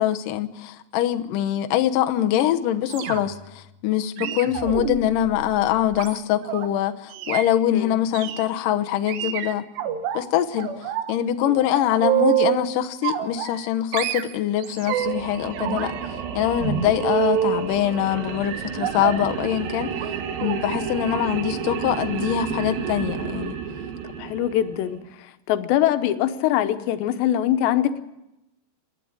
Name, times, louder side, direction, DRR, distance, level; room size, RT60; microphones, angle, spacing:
voice 1, 0.0-3.4 3.8-9.7 10.1-10.7 11.1-15.9 16.4-19.9 20.4-23.5, left 11 dB, 70° left, 2.1 m, -23 dB
sound 1, 2.9-3.5 4.2-6.7 7.1-7.5 8.1-8.4 9.1-10.2 10.6-11.1 11.4-12.6 13.0-13.7 13.9-15.2 15.6-17.6 18.8-19.3 19.9-20.1 20.4-20.6 20.9-21.1 21.4-21.5, right 11 dB, 80° right, 3.3 m, -27 dB
sound 2, 14.7-25.0, right 7 dB, 65° right, 3.2 m, -32 dB
voice 2, 24.2-25.0 25.5-28.0, left 11 dB, 90° left, 3.2 m, -22 dB
27.5 x 11.5 x 8.8 m
omnidirectional pair, 4.9 m